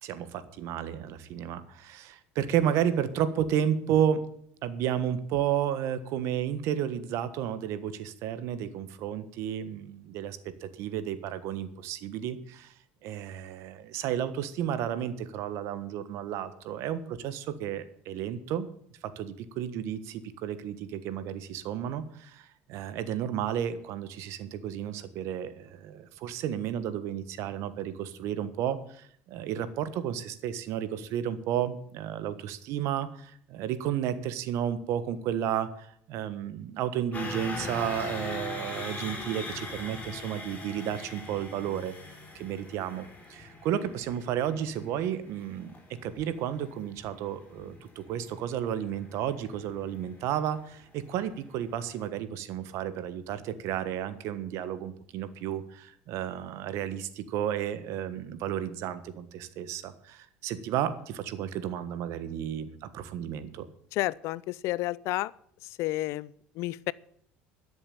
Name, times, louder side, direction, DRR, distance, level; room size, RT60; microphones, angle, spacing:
voice 1, 0.0-4.3 4.6-12.7 13.0-18.7 19.1-41.9 42.3-63.7, right 10 dB, 65° right, 13 dB, 1.4 m, -32 dB
sound 1, 37.1-51.2 51.5-51.7 52.0-52.1, left 2 dB, 25° left, 5.6 m, -41 dB
voice 2, 63.9-65.3 65.8-66.3 66.6-66.9, left 17 dB, 65° left, 21 dB, 0.5 m, -30 dB
12.5 x 7.1 x 8.9 m, 0.66 s
supercardioid pair, 105°, 5 cm